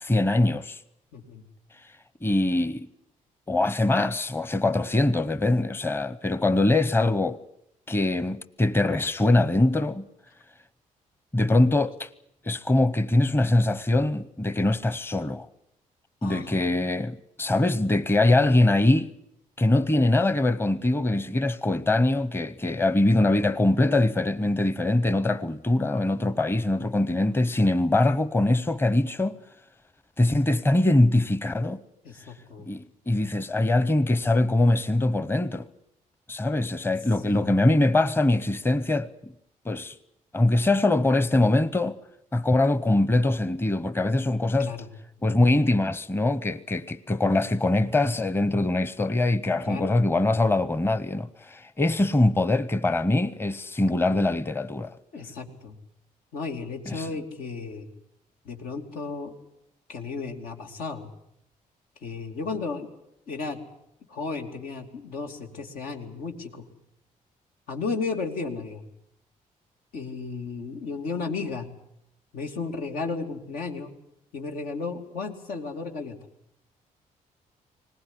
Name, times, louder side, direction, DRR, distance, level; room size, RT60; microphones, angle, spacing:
voice 1, 0.0-0.8 2.2-2.9 3.5-7.4 7.9-10.0 11.3-12.1 12.4-15.5 16.2-19.1 19.6-29.4 30.2-31.8 32.7-35.7 36.3-39.3 39.6-39.9 40.3-42.0 42.3-44.8 45.2-54.9 56.9-57.1, left 2 dB, 15° left, 0.8 m, -23 dB
voice 2, 1.1-1.4 16.2-16.7 32.0-32.7 37.3-37.4 44.6-44.9 49.6-50.0 55.1-55.7 56.3-57.9 58.4-59.3 59.9-61.1 62.0-62.9 63.3-63.6 64.1-66.6 67.7-68.8 69.9-71.7 72.3-73.9 74.3-76.1, left 4 dB, 90° left, 3.0 m, -34 dB
21.0 x 19.0 x 9.9 m
cardioid pair, 95°, 14 cm